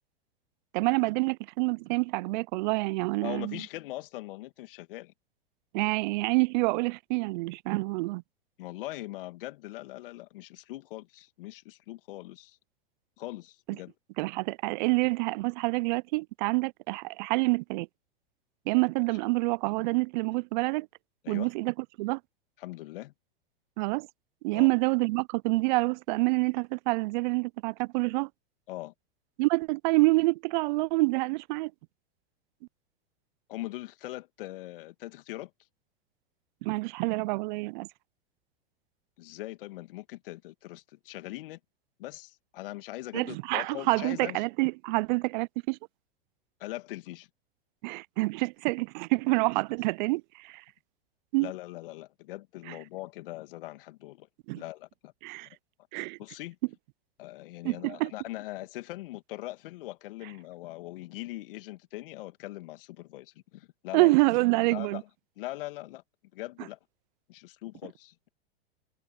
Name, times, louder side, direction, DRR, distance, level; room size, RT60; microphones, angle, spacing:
voice 1, 0.7-3.6 5.7-8.2 14.2-17.9 18.7-20.9 21.3-22.2 23.8-24.1 24.4-28.3 29.4-31.7 36.6-37.9 43.1-45.8 47.8-50.6 51.3-51.5 52.7-52.8 54.5-54.6 55.2-55.5 55.9-56.2 57.6-58.1 63.9-65.0, right 25 dB, 50° right, 0.6 m, -27 dB
voice 2, 3.2-5.1 8.6-12.6 13.2-13.9 21.2-21.5 22.6-23.1 24.5-24.7 28.7-28.9 33.5-35.5 39.2-41.6 42.0-44.4 46.6-47.3 51.4-54.3 54.6-55.1 55.4-55.6 56.2-56.6 57.2-64.1 64.7-65.1 65.4-66.0 66.3-66.8 67.3-68.3, left 17 dB, 60° left, 2.1 m, -41 dB
hypercardioid pair, 100°, 31 cm